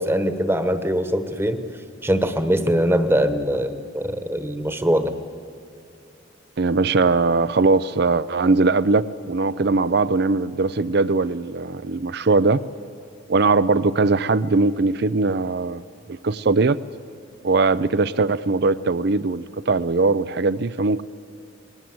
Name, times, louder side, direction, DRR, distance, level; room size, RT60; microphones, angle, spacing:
voice 1, 0.0-1.6 2.0-5.1, equal, 10° right, 9 dB, 1.2 m, -22 dB
voice 2, 6.6-12.6 13.3-15.8 16.1-16.8 17.4-21.0, right 3 dB, 60° right, 16 dB, 0.5 m, -20 dB
27.5 x 20.5 x 7.8 m, 2.5 s
head